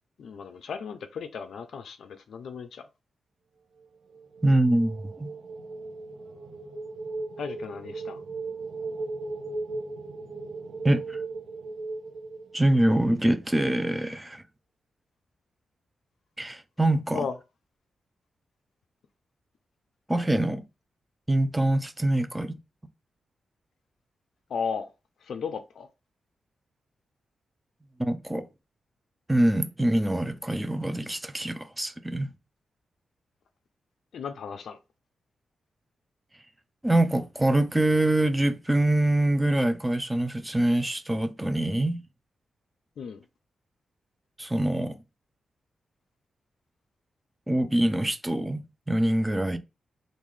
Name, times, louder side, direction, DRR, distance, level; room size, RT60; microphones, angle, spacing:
voice 1, 0.2-2.8 7.4-8.2 17.1-17.4 24.5-24.9 25.2-25.9 34.1-34.8 43.0-43.2, left 6 dB, 70° left, 0.4 m, -35 dB
sound 1, 4.1-13.0, right 3 dB, 70° right, 0.7 m, -37 dB
voice 2, 4.4-5.3 10.8-11.2 12.5-14.4 16.4-17.3 20.1-20.6 21.3-22.6 28.0-28.5 29.3-32.3 36.8-42.0 44.4-45.0 47.5-49.6, right 1 dB, 10° right, 0.4 m, -24 dB
3.8 x 2.5 x 3.1 m
wide cardioid pair, 140°, 0 cm